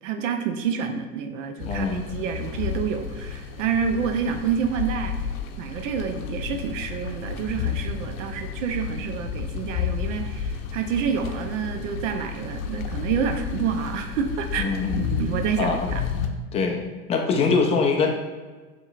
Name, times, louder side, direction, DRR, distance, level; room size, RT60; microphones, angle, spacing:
voice 1, 0.0-5.2 5.6-14.7 15.0-16.0, right 7 dB, 60° right, 6 dB, 0.7 m, -28 dB
sound 1, 1.6-16.3, left 7 dB, 65° left, 0.7 m, -31 dB
voice 2, 1.7-2.0 14.6-15.0 15.6-15.9 16.5-18.1, left 4 dB, 15° left, 2 dB, 0.3 m, -23 dB
7.0 x 3.1 x 2.4 m, 1.3 s
hypercardioid pair, 95°, 43 cm